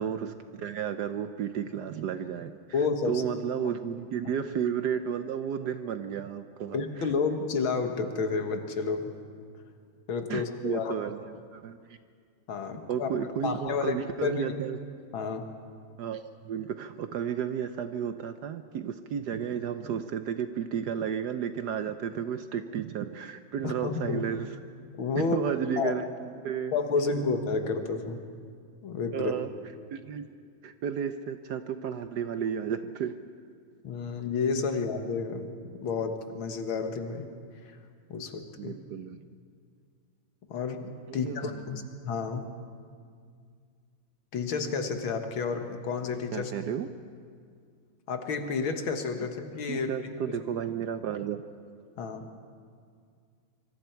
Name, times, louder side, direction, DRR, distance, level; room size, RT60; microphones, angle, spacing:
voice 1, 0.0-2.5 3.1-7.1 10.3-11.9 12.9-14.8 16.0-24.5 25.3-26.0 26.4-26.8 29.1-29.5 29.9-30.2 30.6-33.1 38.6-39.3 41.1-41.8 46.3-46.9 49.7-51.4, right 8 dB, 65° right, 9 dB, 1.1 m, -33 dB
voice 2, 2.7-3.3 4.2-4.3 6.7-9.1 10.1-10.9 12.5-13.1 13.4-14.6 15.1-15.5 23.6-24.2 25.0-25.9 26.7-28.2 28.8-29.3 33.8-35.5 35.8-37.3 37.6-37.8 38.1-38.8 40.5-42.6 44.3-46.5 48.1-49.9 50.3-50.4 52.0-52.3, left 4 dB, 75° left, 6 dB, 2.2 m, -30 dB
25.0 x 24.5 x 4.6 m, 2.1 s
omnidirectional pair, 2.2 m